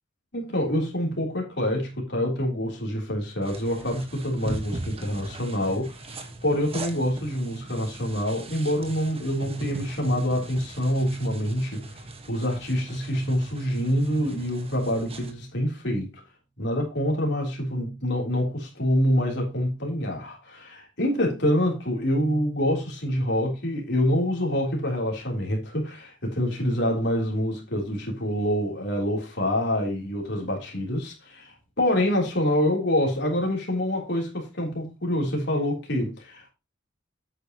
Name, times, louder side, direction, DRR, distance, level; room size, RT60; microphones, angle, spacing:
voice 1, 0.3-16.2 16.6-36.5, equal, 60° left, 3.5 m, -26 dB
sound 1, 3.4-15.3, right 2 dB, 30° right, 1.4 m, -39 dB
9.5 x 8.9 x 3.0 m
head